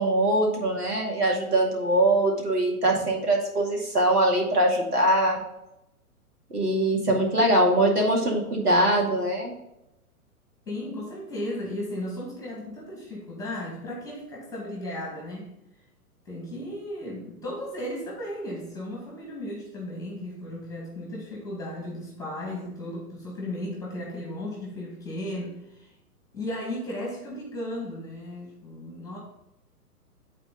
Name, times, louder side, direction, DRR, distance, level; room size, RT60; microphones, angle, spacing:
voice 1, 0.0-5.4 6.5-9.5, right 1 dB, 80° right, -1 dB, 2.4 m, -22 dB
voice 2, 10.7-15.5 16.3-25.9 26.3-29.2, left 1 dB, 5° left, -3 dB, 1.9 m, -35 dB
9.7 x 4.3 x 3.9 m, 0.89 s
figure-of-eight pair, 120°, 46 cm